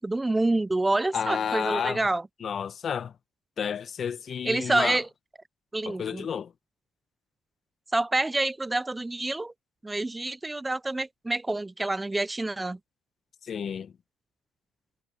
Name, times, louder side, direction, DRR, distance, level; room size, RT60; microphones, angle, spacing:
voice 1, 0.0-2.3 4.4-5.1 5.7-6.3 7.9-9.5 9.8-12.8, right 2 dB, 15° right, 1.1 m, -27 dB
voice 2, 1.1-2.0 2.4-3.1 3.6-5.0 5.8-6.5 13.4-13.9, left 7 dB, 45° left, 1.5 m, -31 dB
hypercardioid pair, 65°, 0 cm